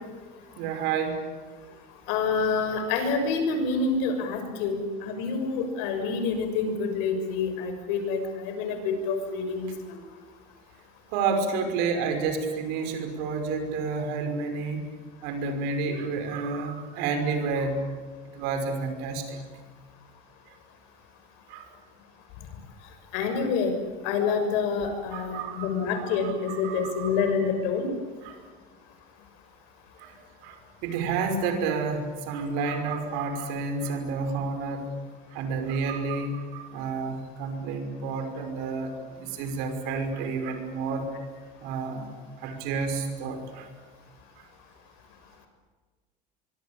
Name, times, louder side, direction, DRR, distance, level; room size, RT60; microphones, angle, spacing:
voice 1, 0.6-1.2 11.1-14.9 15.2-17.9 18.3-19.4 21.5-21.7 25.1-25.9 26.2-27.3 28.2-28.4 30.0-30.2 30.4-34.9 35.3-41.1 41.6-43.7, right 4 dB, 70° right, 6 dB, 5.6 m, -30 dB
voice 2, 2.1-10.0 23.1-23.7 24.0-27.9, left 5 dB, 75° left, 7 dB, 6.6 m, -27 dB
25.5 x 23.5 x 8.8 m, 1.4 s
cardioid pair, 155°, 18 cm